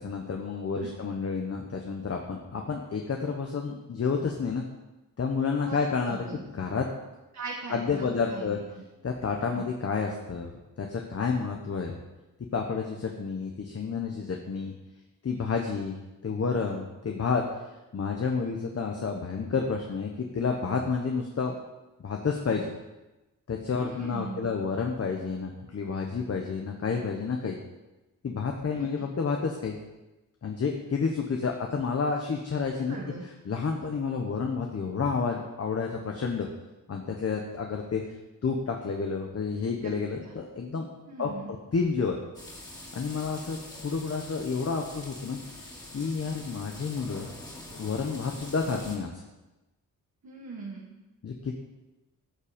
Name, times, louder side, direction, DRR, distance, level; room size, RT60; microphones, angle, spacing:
voice 1, 0.0-4.6 5.2-6.9 7.7-8.6 9.0-10.5 10.8-12.0 12.5-14.7 15.2-17.6 17.9-21.6 22.0-22.7 23.5-27.6 28.2-29.8 30.4-36.5 36.9-38.0 38.4-40.9 41.2-41.3 41.7-42.2 42.9-45.6 45.9-47.3 47.7-49.2 51.2-51.5, left 5 dB, 45° left, 2 dB, 1.1 m, -30 dB
voice 2, 6.0-6.4 7.3-8.6 9.4-9.7 23.8-24.5 28.8-28.9 32.9-33.2 39.8-39.9 41.1-41.6 50.2-50.9, right 4 dB, 55° right, -2 dB, 1.7 m, -40 dB
sound 1, 42.3-49.0, left 1 dB, 10° left, 2.6 m, -44 dB
14.0 x 7.4 x 5.2 m, 1.0 s
wide cardioid pair, 150°, 34 cm